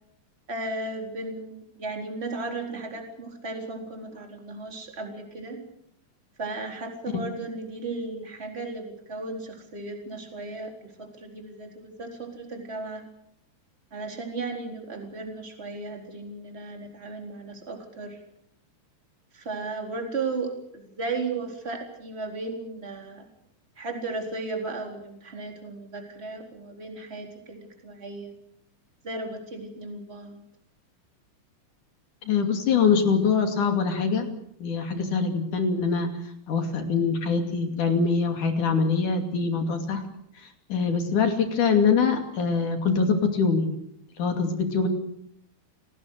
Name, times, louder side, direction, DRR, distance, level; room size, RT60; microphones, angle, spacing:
voice 1, 0.5-5.6 6.4-13.1 13.9-18.2 19.3-23.3 23.8-28.3 29.0-30.4, right 3 dB, 15° right, 2 dB, 3.9 m, -35 dB
voice 2, 32.3-34.3 34.6-36.1 36.5-40.0 40.7-43.7 44.2-44.9, left 5 dB, 50° left, 5 dB, 3.8 m, -23 dB
28.5 x 19.0 x 6.7 m, 0.72 s
omnidirectional pair, 4.9 m